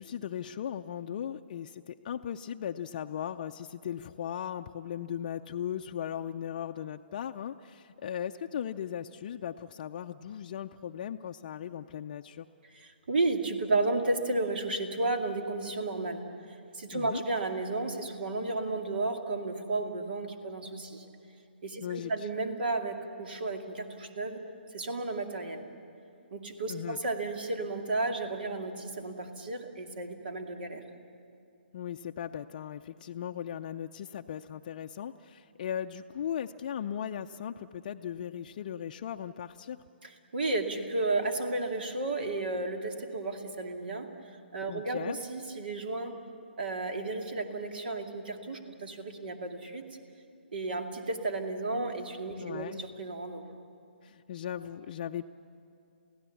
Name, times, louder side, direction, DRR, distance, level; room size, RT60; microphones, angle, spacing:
voice 1, 0.0-12.5 16.9-17.2 21.8-22.1 26.7-27.0 31.7-39.8 44.7-45.2 52.4-52.8 54.0-55.3, left 9 dB, 45° left, 4 dB, 0.6 m, -37 dB
voice 2, 12.7-21.1 21.6-24.4 24.7-25.7 26.3-30.8 40.0-46.2 46.6-49.8 50.5-53.4, right 2 dB, 60° right, 5 dB, 2.4 m, -33 dB
29.0 x 16.5 x 7.2 m, 2.6 s
figure-of-eight pair, 140°, 6 cm